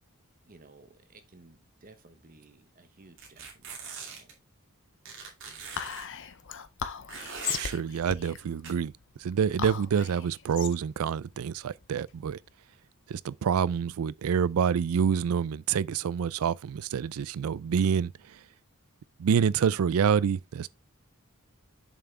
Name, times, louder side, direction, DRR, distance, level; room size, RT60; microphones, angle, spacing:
voice 1, 0.5-4.3, right 3 dB, 40° right, 1.0 m, -56 dB
sound 1, 3.2-4.3 5.1-6.1 7.1-7.8 8.6-8.7, right 5 dB, 60° right, 2.5 m, -41 dB
Whispering, 5.8-12.4, left 7 dB, 60° left, 0.7 m, -38 dB
voice 2, 7.5-8.9 9.2-12.4 13.1-18.4 19.2-20.7, right 7 dB, 75° right, 0.4 m, -27 dB
7.3 x 5.7 x 3.3 m
head